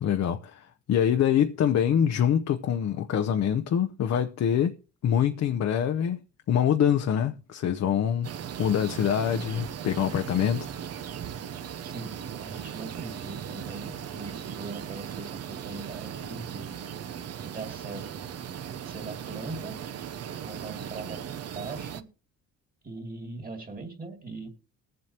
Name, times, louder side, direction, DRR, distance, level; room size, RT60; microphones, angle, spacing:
voice 1, 0.0-4.8 5.0-6.2 6.5-8.3 8.6-10.7, left 9 dB, 60° left, 0.7 m, -25 dB
sound 1, 8.2-22.0, right 9 dB, 55° right, 0.8 m, -38 dB
voice 2, 11.8-16.7 17.4-18.3 18.9-19.8 20.4-21.3 21.5-22.1 22.8-24.5, right 3 dB, 30° right, 2.6 m, -40 dB
21.5 x 7.7 x 2.9 m
cardioid pair, 90°, 30 cm